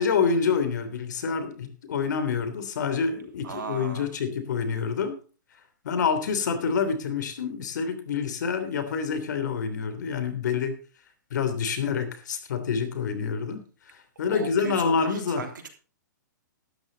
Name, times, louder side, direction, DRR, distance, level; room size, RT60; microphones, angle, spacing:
voice 1, 0.0-5.2 5.8-10.7 11.3-13.6 14.2-15.4, left 6 dB, 65° left, 10 dB, 3.2 m, -27 dB
voice 2, 3.4-4.1 14.3-15.7, right 5 dB, 85° right, 4 dB, 3.3 m, -36 dB
12.5 x 11.0 x 4.0 m, 0.36 s
hypercardioid pair, 135°, 10 cm